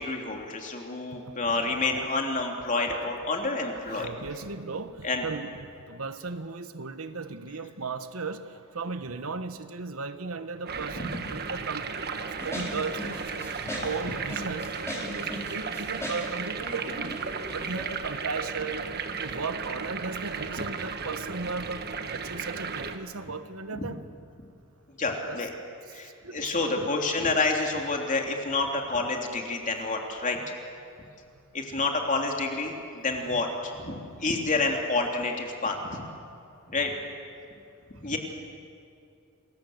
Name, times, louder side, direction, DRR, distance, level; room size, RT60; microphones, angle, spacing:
voice 1, 0.0-4.1 5.0-5.2 11.1-11.2 23.7-23.8 25.0-25.5 25.9-30.4 31.5-36.0 36.7-36.9 38.0-38.2, left 3 dB, 40° left, 2 dB, 3.2 m, -29 dB
voice 2, 1.3-1.6 2.0-2.1 3.6-17.2 17.5-18.8 19.2-24.0 25.3-25.4 25.9-26.9, right 4 dB, 85° right, 10 dB, 1.3 m, -36 dB
sound 1, 10.7-23.0, right 5 dB, 50° right, 1.4 m, -35 dB
sound 2, 12.4-17.8, left 1 dB, 15° left, 5.7 m, -38 dB
28.5 x 21.5 x 8.0 m, 2.5 s
head